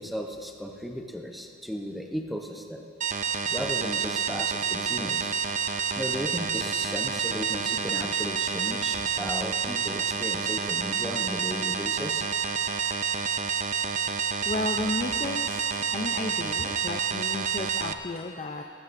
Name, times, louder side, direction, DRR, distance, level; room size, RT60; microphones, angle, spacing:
voice 1, 0.0-2.8 3.5-5.4 6.0-12.2, equal, ahead, 2 dB, 0.8 m, -35 dB
sound 1, 3.0-17.9, right 6 dB, 35° right, 0.4 m, -29 dB
voice 2, 14.4-15.6 15.9-18.6, left 2 dB, 35° left, 3 dB, 0.5 m, -33 dB
19.0 x 16.5 x 2.6 m, 2.6 s
head